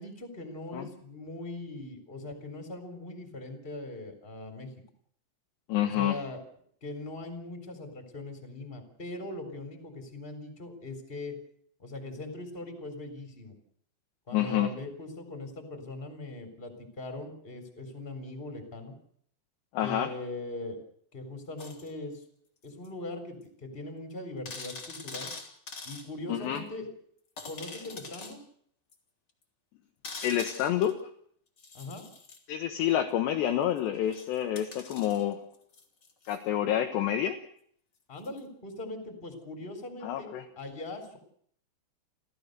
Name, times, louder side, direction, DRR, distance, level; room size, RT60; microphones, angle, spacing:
voice 1, 0.0-4.7 5.8-6.4 6.8-11.4 11.8-13.5 14.3-18.9 19.8-20.8 21.1-22.2 22.6-25.3 25.8-26.9 27.4-28.4 31.7-32.0 38.1-41.2, left 2 dB, 15° left, 6 dB, 3.2 m, -40 dB
voice 2, 5.7-6.2 14.3-14.7 19.7-20.1 26.3-26.6 30.2-31.0 32.5-35.4 36.3-37.4 40.0-40.4, left 11 dB, 75° left, 6 dB, 2.8 m, -28 dB
sound 1, 21.6-21.9 22.8-22.9 23.4-23.5 23.7-23.8 24.4-26.1 26.5-26.6 27.4-28.4 28.9-29.0 30.0-31.0 31.6-32.4 33.3-36.4 38.2-38.4, left 4 dB, 30° left, 2.3 m, -44 dB
30.0 x 14.0 x 6.7 m, 0.64 s
omnidirectional pair, 5.8 m